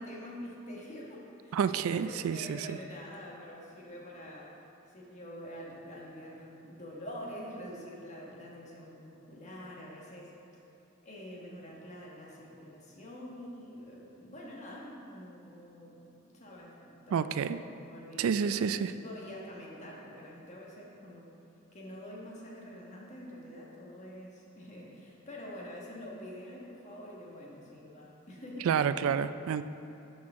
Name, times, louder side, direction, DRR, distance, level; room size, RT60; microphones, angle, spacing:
voice 1, 0.0-1.6 1.9-4.6 4.9-10.6 11.0-21.3 21.7-29.0, equal, 35° left, -4 dB, 1.5 m, -46 dB
voice 2, 1.5-2.8 17.1-17.6 18.2-18.9 28.6-29.6, right 7 dB, 75° right, 13 dB, 0.3 m, -29 dB
12.5 x 6.2 x 3.7 m, 2.8 s
head